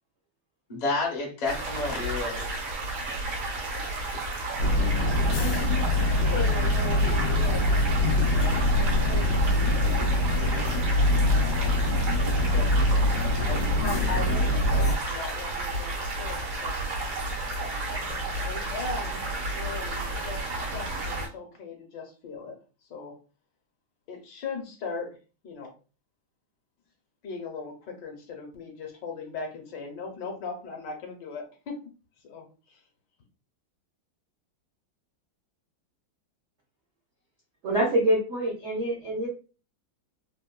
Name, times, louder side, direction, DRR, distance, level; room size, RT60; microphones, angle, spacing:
voice 1, 0.7-2.6, left 3 dB, 55° left, 0.4 m, -30 dB
sound 1, 1.5-21.3, right 2 dB, 85° right, 1.6 m, -32 dB
sound 2, 4.6-15.0, left 1 dB, 85° left, 0.7 m, -24 dB
voice 2, 6.3-8.2 8.9-9.3 12.5-12.7 13.3-16.8 18.4-19.2 19.5-22.6 22.9-23.2 24.1-25.2 25.4-25.7 27.2-31.8 32.2-32.8, left 4 dB, 70° left, 1.2 m, -38 dB
voice 3, 37.6-39.3, right 1 dB, 70° right, 0.6 m, -25 dB
3.6 x 2.1 x 2.2 m
omnidirectional pair, 2.2 m